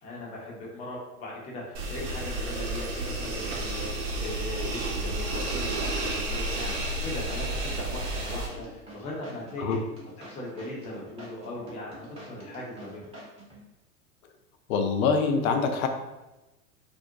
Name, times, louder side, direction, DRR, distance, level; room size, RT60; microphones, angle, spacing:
voice 1, 0.0-9.8 10.3-13.1, left 1 dB, 15° left, -4 dB, 0.5 m, -39 dB
sound 1, 1.7-8.5, right 1 dB, 55° right, 0.7 m, -31 dB
sound 2, 5.8-13.6, right 1 dB, 15° right, 0.7 m, -47 dB
voice 2, 14.7-15.9, left 5 dB, 70° left, 5 dB, 0.5 m, -24 dB
2.5 x 2.0 x 2.7 m, 1.0 s
hypercardioid pair, 95°, 44 cm